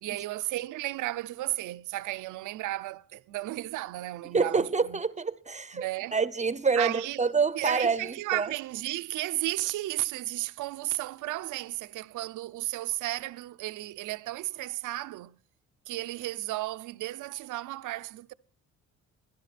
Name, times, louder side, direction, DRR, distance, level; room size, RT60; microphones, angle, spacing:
voice 1, 0.0-5.0 5.7-6.2 6.7-7.2 7.5-15.4 15.9-18.3, right 17 dB, 80° right, 0.7 m, -34 dB
voice 2, 4.3-5.8 6.1-8.5, right 4 dB, 25° right, 0.7 m, -27 dB
20.5 x 11.0 x 4.2 m
cardioid pair, 90°, 30 cm